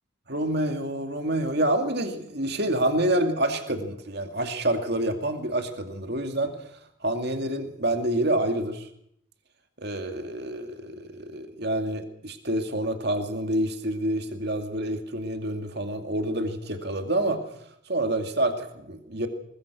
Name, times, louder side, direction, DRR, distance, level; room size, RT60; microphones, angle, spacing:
voice 1, 0.3-6.7 7.0-8.9 9.8-17.4 17.9-19.3, right 1 dB, 50° right, 6 dB, 2.3 m, -27 dB
21.0 x 20.5 x 6.2 m, 0.74 s
head